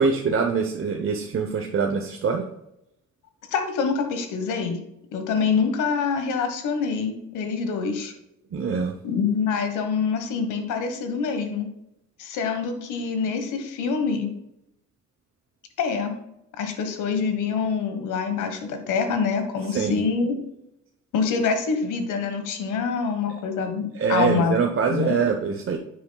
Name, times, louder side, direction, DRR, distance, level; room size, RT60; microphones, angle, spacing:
voice 1, 0.0-2.4 8.5-8.9 19.7-19.9 23.9-25.8, right 5 dB, 45° right, 2 dB, 0.9 m, -24 dB
voice 2, 3.5-4.8 5.1-8.1 9.0-11.7 12.2-14.3 15.8-16.1 16.6-20.4 21.1-24.6 24.9-25.2, left 5 dB, 90° left, 7 dB, 1.4 m, -25 dB
9.7 x 8.5 x 2.3 m, 0.82 s
cardioid pair, 90°, 30 cm